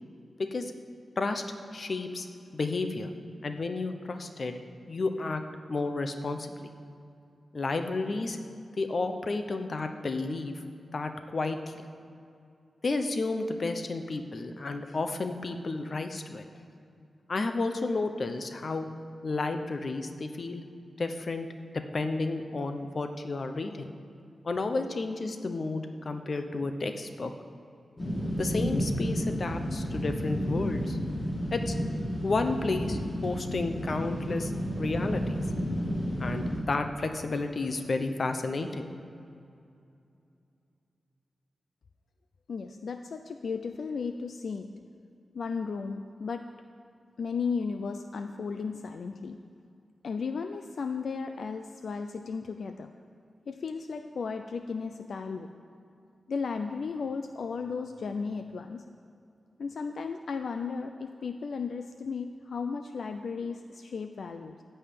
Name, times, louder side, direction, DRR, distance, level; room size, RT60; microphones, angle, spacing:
voice 1, 0.4-0.7 1.2-1.4 1.7-2.3 2.5-3.1 3.4-4.6 4.9-5.4 5.7-6.5 7.5-8.4 8.8-10.6 10.9-11.7 12.8-16.4 17.3-18.9 19.2-20.6 21.0-21.5 21.7-23.9 24.4-27.3 28.4-31.0 31.5-31.8 32.2-34.5 34.8-35.4 36.2-38.9, left 3 dB, 40° left, 7 dB, 0.8 m, -31 dB
sound 1, 28.0-36.6, equal, 20° left, 2.2 m, -31 dB
voice 2, 42.5-44.7 45.3-46.4 47.2-49.4 50.0-52.9 53.5-55.5 56.3-58.8 59.6-64.6, left 5 dB, 65° left, 7 dB, 0.4 m, -35 dB
15.0 x 5.6 x 8.4 m, 2.6 s
wide cardioid pair, 170°, 0 cm